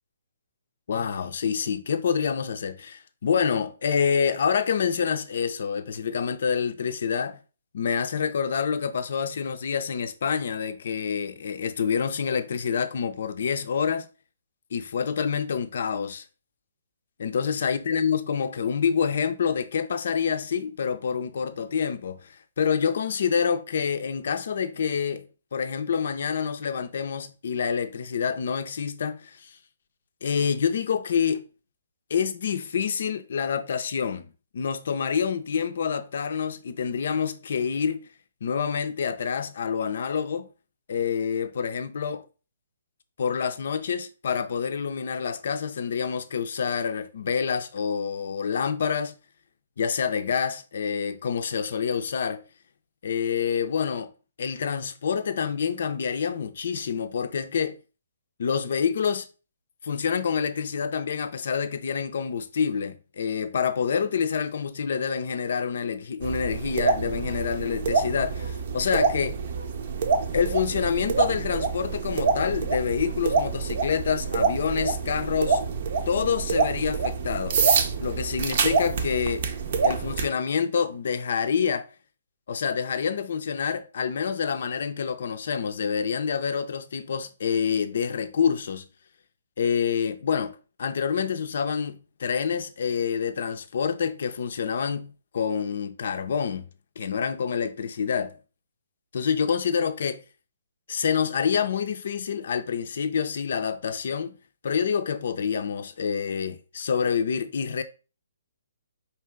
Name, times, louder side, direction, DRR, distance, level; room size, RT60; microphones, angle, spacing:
voice 1, 0.9-7.4 7.7-14.1 14.7-16.2 17.2-25.3 25.5-29.6 30.2-31.4 32.1-38.0 38.4-40.5 40.9-42.2 43.2-49.1 49.8-52.4 53.0-54.1 54.4-57.8 58.4-59.3 59.8-69.4 70.3-75.6 76.1-77.6 78.0-79.5 79.8-81.9 82.5-88.9 89.6-96.7 97.0-98.4 99.1-100.2 100.9-104.3 104.6-107.8, left 6 dB, 60° left, 0.5 m, -27 dB
sound 1, 66.2-80.3, right 5 dB, 50° right, 0.6 m, -26 dB
4.6 x 2.9 x 3.5 m
figure-of-eight pair, 130°, 0 cm